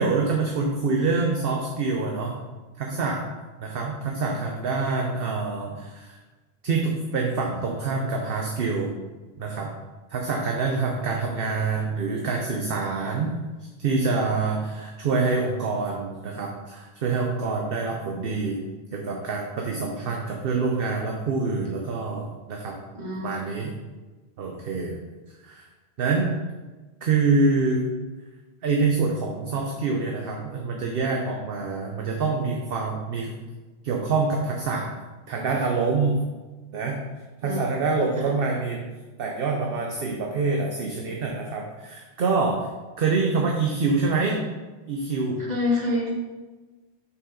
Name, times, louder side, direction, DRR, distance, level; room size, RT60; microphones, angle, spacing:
voice 1, 0.0-2.4 2.8-3.2 3.6-6.2 6.6-8.9 9.4-9.7 10.1-13.3 13.8-18.6 18.9-22.7 23.2-23.7 24.4-25.0 25.4-25.6 26.0-26.3 27.0-27.8 28.6-33.3 33.8-34.9 35.3-36.2 36.7-37.0 37.4-38.8 39.2-42.6 43.0-44.4 44.9-45.4, right 4 dB, 60° right, 0 dB, 0.9 m, -26 dB
voice 2, 22.9-23.4 37.4-37.7 38.2-38.3 45.4-46.1, left 2 dB, 40° right, -3 dB, 1.5 m, -27 dB
6.3 x 5.9 x 3.8 m, 1.3 s
omnidirectional pair, 1.1 m